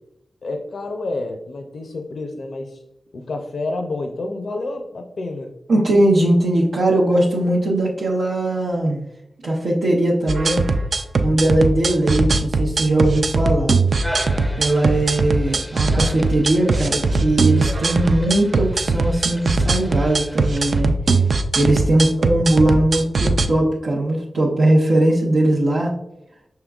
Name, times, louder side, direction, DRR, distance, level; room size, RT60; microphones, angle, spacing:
voice 1, 0.4-2.8 3.1-5.5, left 2 dB, 70° left, 4 dB, 0.4 m, -29 dB
voice 2, 5.7-9.0 9.4-10.6 11.2-13.8 14.6-20.9 21.5-25.9, right 1 dB, 90° right, -4 dB, 0.7 m, -19 dB
sound 1, 10.3-23.5, right 3 dB, 60° right, 0.3 m, -20 dB
sound 2, 14.0-20.8, equal, ahead, 0.5 m, -36 dB
5.6 x 3.6 x 2.3 m, 0.83 s
wide cardioid pair, 105°, 0 cm